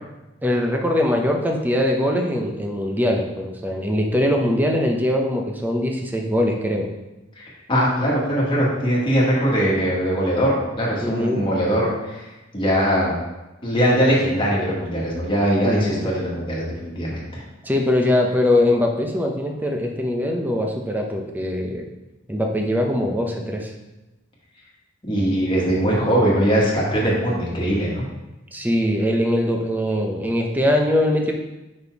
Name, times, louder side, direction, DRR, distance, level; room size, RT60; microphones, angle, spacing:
voice 1, 0.4-6.9 11.0-11.4 15.6-16.0 17.6-21.9 22.3-23.7 28.5-31.3, left 1 dB, 10° right, 2 dB, 0.7 m, -22 dB
voice 2, 7.4-12.3 12.5-13.2 13.6-17.4 25.0-28.1, equal, 25° left, -5 dB, 1.7 m, -21 dB
5.3 x 4.3 x 4.6 m, 1.0 s
head